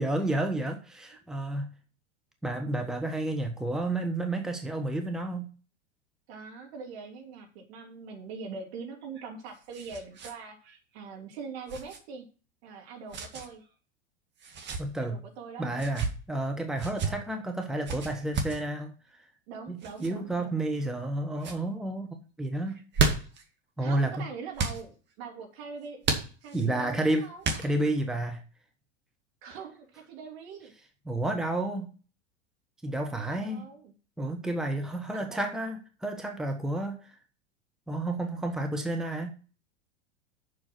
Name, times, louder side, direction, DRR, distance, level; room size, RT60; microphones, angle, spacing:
voice 1, 0.0-1.7 2.4-5.5 14.8-15.2 15.6-19.2 19.7-22.8 23.8-24.1 26.5-27.3 27.6-28.4 31.1-31.9 32.8-33.7 34.2-37.2 37.9-39.3, right 1 dB, ahead, 4 dB, 1.1 m, -31 dB
voice 2, 6.3-12.3 12.6-13.6 15.0-15.7 17.0-17.3 19.5-20.6 23.8-26.0 26.4-27.4 29.4-30.7 33.3-33.9 35.1-35.4, right 5 dB, 60° right, 2 dB, 2.9 m, -42 dB
sound 1, 9.0-10.3 10.6-10.8 11.7-12.0 13.1-13.5 14.4-14.8 15.7-16.1 16.8-17.1 17.8-18.6 19.8-20.1 20.7-21.1 21.4-21.6 22.7-23.4 24.5-24.8 26.0-26.7 27.4-28.0, right 4 dB, 30° right, 2.0 m, -31 dB
7.2 x 6.4 x 5.9 m, 0.37 s
hypercardioid pair, 95°, 36 cm